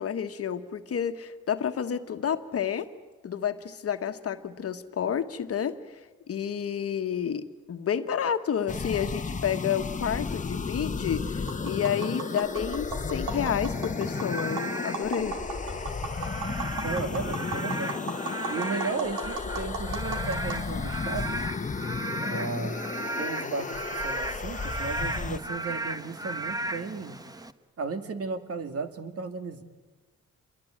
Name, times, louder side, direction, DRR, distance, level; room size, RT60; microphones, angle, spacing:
voice 1, 0.0-2.9 3.2-5.8 6.3-15.4, left 8 dB, 50° left, 8 dB, 1.5 m, -30 dB
sound 1, 8.7-25.4, left 4 dB, 25° left, 1.2 m, -33 dB
Tap, 11.4-20.6, right 4 dB, 90° right, 4.5 m, -38 dB
Frog / Rain, 14.0-27.5, right 2 dB, 10° right, 1.2 m, -36 dB
voice 2, 16.4-18.0 18.5-21.4 22.2-22.9 23.2-27.2 27.8-29.6, right 4 dB, 50° right, 8 dB, 2.3 m, -35 dB
28.0 x 22.5 x 8.9 m, 1.2 s
cardioid pair, 90°, 30 cm